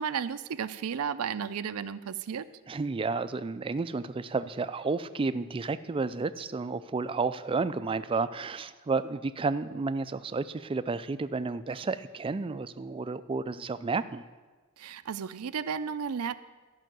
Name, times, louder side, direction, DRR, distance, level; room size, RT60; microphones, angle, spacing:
voice 1, 0.0-2.5 14.8-16.4, right 7 dB, 80° right, 14 dB, 0.5 m, -33 dB
voice 2, 2.7-14.2, right 4 dB, 25° right, 13 dB, 0.4 m, -31 dB
13.0 x 5.6 x 7.6 m, 1.3 s
head